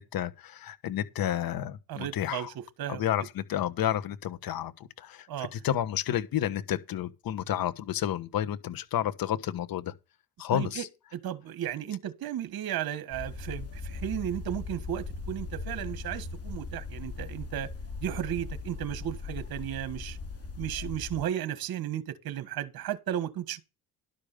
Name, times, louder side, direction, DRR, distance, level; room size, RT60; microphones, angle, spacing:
voice 1, 0.0-2.5 2.9-4.7 5.0-9.9 10.4-10.9, left 11 dB, 55° left, 1.3 m, -31 dB
voice 2, 1.9-2.5 2.8-3.0 5.3-5.5 10.5-10.9 11.1-17.7 18.0-20.2 20.6-23.6, right 11 dB, 55° right, 1.6 m, -34 dB
sound 1, 13.1-21.2, left 4 dB, 35° left, 2.4 m, -39 dB
12.0 x 5.2 x 6.7 m
supercardioid pair, 80°, 43 cm